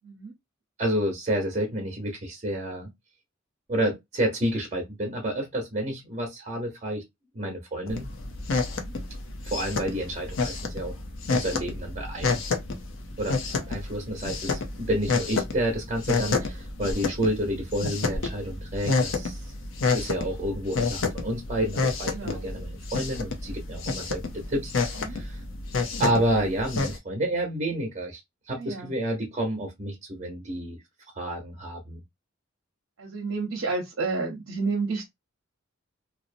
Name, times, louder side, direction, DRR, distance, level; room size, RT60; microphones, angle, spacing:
voice 1, 0.0-0.3 8.8-8.9 13.5-13.7 22.1-22.5 25.0-25.2 28.5-28.9 33.0-35.1, right 4 dB, 70° right, 0.7 m, -31 dB
voice 2, 0.8-2.9 3.7-7.0 7.3-8.1 9.4-10.9 11.3-12.4 13.2-13.4 13.7-19.4 19.9-25.4 26.0-28.2 28.5-30.8 31.1-32.0, right 1 dB, 35° right, 0.8 m, -29 dB
sound 1, 7.9-27.0, left 4 dB, 75° left, 0.6 m, -30 dB
2.6 x 2.0 x 2.5 m
head